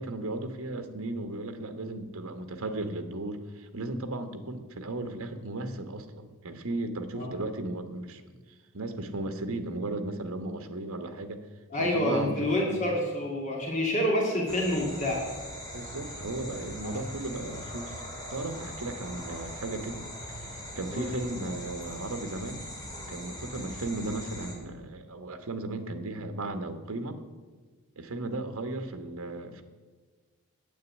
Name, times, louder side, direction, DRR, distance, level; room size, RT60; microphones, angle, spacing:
voice 1, 0.0-8.2 8.7-11.4 11.8-12.9 15.7-18.0 18.3-20.0 20.8-22.6 23.1-27.2 28.0-29.6, right 2 dB, 70° right, 8 dB, 1.2 m, -35 dB
voice 2, 11.7-15.2 16.8-17.0 20.9-21.1, left 1 dB, 35° left, -1 dB, 2.1 m, -28 dB
sound 1, 14.5-24.5, equal, 15° left, 2.8 m, -41 dB
9.4 x 8.7 x 8.2 m, 1.4 s
head